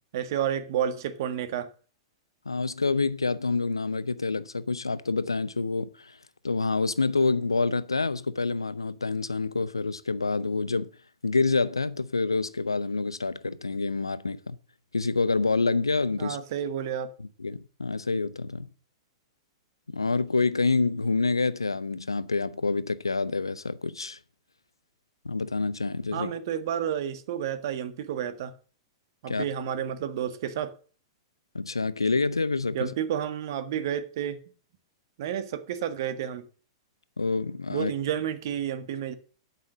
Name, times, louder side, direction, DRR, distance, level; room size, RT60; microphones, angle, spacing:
voice 1, 0.1-1.7 16.2-17.1 26.1-28.5 29.2-30.8 32.7-34.4 35.2-36.5 37.7-39.1, right 9 dB, 55° right, 1.6 m, -30 dB
voice 2, 2.5-6.2 6.4-10.9 11.2-14.6 14.9-16.4 17.2-18.7 19.9-24.2 25.2-26.3 29.3-29.4 31.5-32.9 37.2-37.9, left 3 dB, 90° left, 0.7 m, -27 dB
11.5 x 5.8 x 7.3 m
figure-of-eight pair, 105°, 2 cm